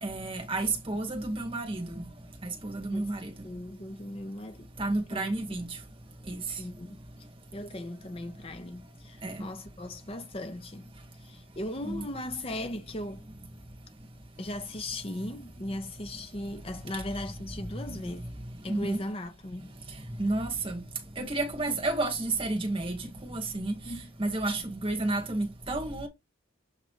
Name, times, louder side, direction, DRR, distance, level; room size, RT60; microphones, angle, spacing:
voice 1, 0.0-1.9 2.4-3.3 4.8-5.7 6.3-6.4 9.2-9.4 11.9-12.0 18.7-19.0 20.2-20.8 21.2-23.0 23.2-23.7 24.2-26.1, right 2 dB, 25° right, 1.4 m, -31 dB
voice 2, 3.4-4.7 5.1-5.3 6.6-7.0 7.5-10.9 11.2-13.2 14.4-18.3 18.6-19.7 21.7-21.8 23.8-24.0, left 1 dB, 30° left, 0.6 m, -38 dB
7.2 x 3.1 x 4.5 m
head